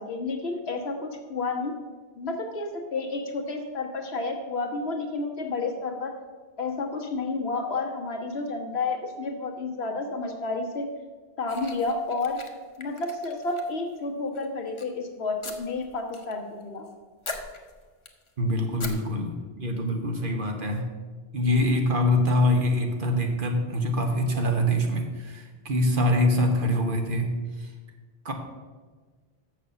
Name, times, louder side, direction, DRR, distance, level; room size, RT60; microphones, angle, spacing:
voice 1, 0.0-1.7 2.1-6.1 6.6-10.9 11.4-12.4 12.8-16.9, left 3 dB, 90° left, 3 dB, 1.5 m, -30 dB
sound 1, 11.5-14.0 14.3-14.8 15.4-16.3 16.6-16.9 17.2-18.3 18.8-18.9, left 3 dB, 30° left, 0.9 m, -40 dB
voice 2, 18.4-20.9 21.3-27.3 27.6-27.7 28.2-28.3, left 1 dB, 60° right, 3 dB, 1.3 m, -24 dB
6.8 x 6.6 x 6.9 m, 1.4 s
omnidirectional pair, 1.0 m